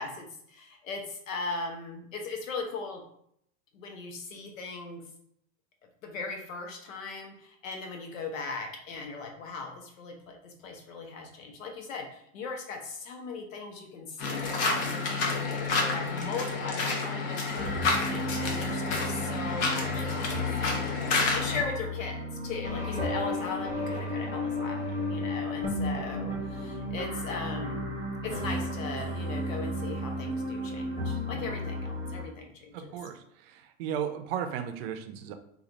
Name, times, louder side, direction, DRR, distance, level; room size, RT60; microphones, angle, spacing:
voice 1, 0.0-3.0 3.7-5.0 6.0-20.8 21.1-27.9 28.2-33.0, left 4 dB, 85° left, 2 dB, 1.0 m, -38 dB
sound 1, 14.2-21.6, left 4 dB, 55° left, 1.0 m, -29 dB
sound 2, 17.6-32.2, left 1 dB, 20° left, 1.4 m, -33 dB
voice 2, 32.7-35.3, right 9 dB, 50° right, 8 dB, 0.5 m, -35 dB
3.1 x 2.5 x 3.9 m, 0.71 s
supercardioid pair, 135°, 39 cm